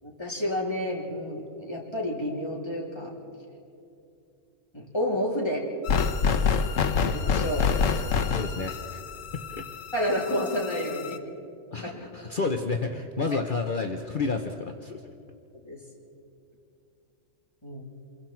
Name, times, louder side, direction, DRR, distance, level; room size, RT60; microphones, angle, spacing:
voice 1, 0.0-3.1 4.7-5.7 7.0-8.1 9.9-11.2 11.9-12.1 15.6-15.8 17.6-17.9, equal, 20° left, -3 dB, 3.6 m, -30 dB
sound 1, 5.8-11.2, left 6 dB, 80° left, 1.2 m, -27 dB
voice 2, 8.3-9.0 9.3-9.7 11.7-15.1, left 4 dB, 45° left, 4 dB, 1.0 m, -30 dB
28.0 x 22.0 x 4.6 m, 2.7 s
omnidirectional pair, 1.3 m